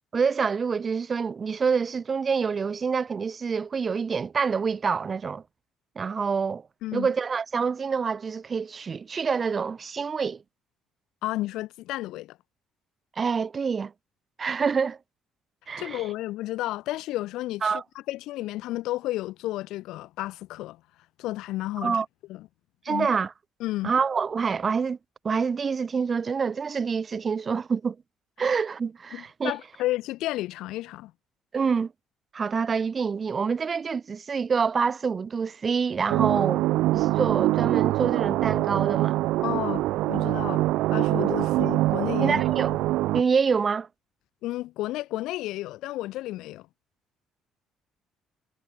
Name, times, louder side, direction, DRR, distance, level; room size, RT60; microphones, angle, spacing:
voice 1, 0.1-5.4 6.0-6.6 6.9-10.4 13.2-13.9 14.4-15.0 15.7-16.0 17.6-17.8 21.8-22.1 22.9-23.3 23.8-25.0 25.2-28.0 28.4-29.5 31.5-31.9 32.3-36.7 36.9-39.2 42.2-42.7 43.1-43.9, right 5 dB, 25° right, 1.8 m, -26 dB
voice 2, 11.2-12.4 15.8-17.7 18.1-20.8 21.2-22.0 22.3-22.5 22.9-23.1 23.6-23.9 29.1-31.1 39.4-39.8 40.1-40.6 40.9-42.4 44.4-46.7, left 16 dB, 80° left, 1.5 m, -32 dB
sound 1, 36.1-43.2, right 17 dB, 80° right, 1.7 m, -24 dB
cardioid pair, 160°, 0 cm